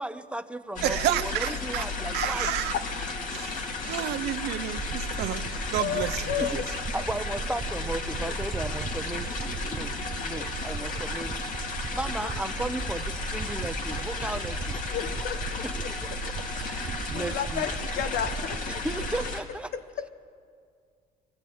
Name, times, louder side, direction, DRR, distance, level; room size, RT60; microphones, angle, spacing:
voice 1, 0.0-2.5 6.4-6.6 6.9-14.8 15.5-17.9 18.7-19.7, right 1 dB, 5° right, 9 dB, 0.8 m, -36 dB
sound 1, 0.8-19.4, left 3 dB, 50° left, 2.3 m, -34 dB
voice 2, 0.8-1.8 2.1-2.8 3.3-5.4 5.7-6.6, right 14 dB, 85° right, 11 dB, 0.8 m, -30 dB
sound 2, 4.8-19.3, right 6 dB, 30° right, 0.5 m, -38 dB
voice 3, 5.8-6.6 9.3-9.4 9.8-9.9 10.3-10.5 14.9-15.6 17.1-18.9 19.7-20.1, left 9 dB, 65° left, 10 dB, 1.2 m, -33 dB
24.5 x 15.0 x 8.6 m, 2.2 s
cardioid pair, 110°, 17 cm